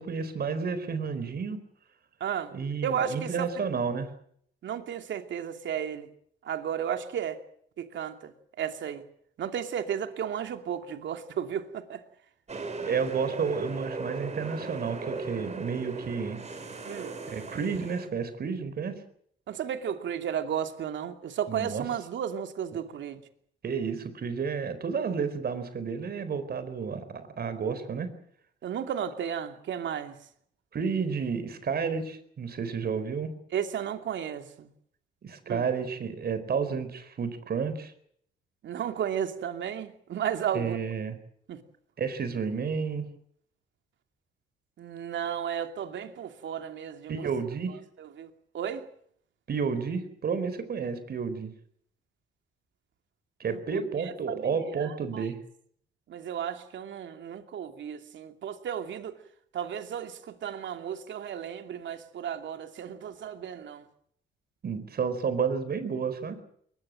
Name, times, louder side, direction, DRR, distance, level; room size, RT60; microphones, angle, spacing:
voice 1, 0.0-1.6 2.5-4.1 12.8-16.4 17.3-18.9 21.5-21.8 23.6-28.1 30.7-33.3 35.2-37.9 40.5-41.2 42.0-43.0 47.1-47.8 49.5-51.5 53.4-55.4 64.6-66.4, right 6 dB, 50° right, 11 dB, 4.3 m, -31 dB
voice 2, 2.2-2.5 2.8-3.5 4.6-6.1 6.4-7.4 7.8-8.3 8.6-9.0 9.4-12.0 16.8-17.2 19.5-23.2 28.6-30.1 33.5-34.7 35.5-35.6 38.6-40.8 41.5-41.6 44.8-47.3 48.0-48.8 53.5-53.6 54.0-54.5 54.8-55.3 56.1-59.2 59.5-63.8, right 9 dB, 70° right, 7 dB, 2.8 m, -33 dB
sound 1, 12.5-18.1, right 3 dB, 35° right, 4.7 m, -38 dB
22.0 x 21.0 x 7.8 m, 0.66 s
cardioid pair, 90°, 20 cm